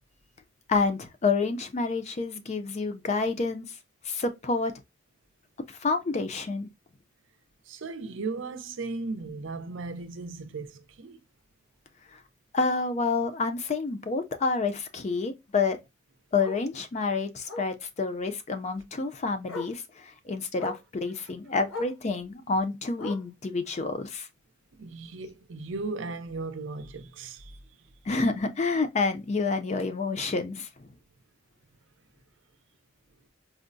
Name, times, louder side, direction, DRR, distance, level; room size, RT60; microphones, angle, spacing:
voice 1, 0.7-3.8 4.0-4.7 5.7-6.7 12.1-12.2 12.5-15.8 16.3-24.3 28.1-30.9, left 4 dB, 35° left, 0.4 m, -28 dB
voice 2, 7.7-11.2 24.8-27.6, right 3 dB, 65° right, 0.5 m, -36 dB
Bark, 10.0-10.1 10.5-10.6 11.0-11.1 11.4-11.5 12.9-13.0 15.5-15.6 16.4-16.7 17.5-17.8 19.0-19.1 19.5-19.8 20.5-20.9 21.7-22.0 23.0-23.4 24.4-24.5, left 2 dB, 80° left, 0.9 m, -39 dB
4.5 x 2.0 x 2.5 m
head